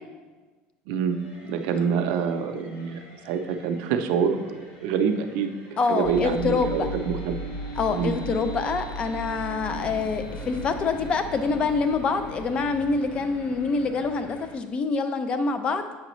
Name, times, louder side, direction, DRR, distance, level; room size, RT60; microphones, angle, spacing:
voice 1, 0.9-3.0 3.2-4.5 4.8-7.4 7.9-8.2, right 6 dB, 70° right, 6 dB, 0.5 m, -26 dB
sound 1, 1.1-12.0, left 1 dB, 85° left, 1.9 m, -52 dB
voice 2, 5.8-6.9 7.8-15.9, left 4 dB, 30° left, 9 dB, 0.4 m, -26 dB
sound 2, 6.0-14.5, right 1 dB, 50° left, 0.8 m, -36 dB
sound 3, 9.7-14.6, right 2 dB, 15° right, 0.8 m, -45 dB
7.5 x 4.9 x 3.0 m, 1.3 s
cardioid pair, 155°, 4 cm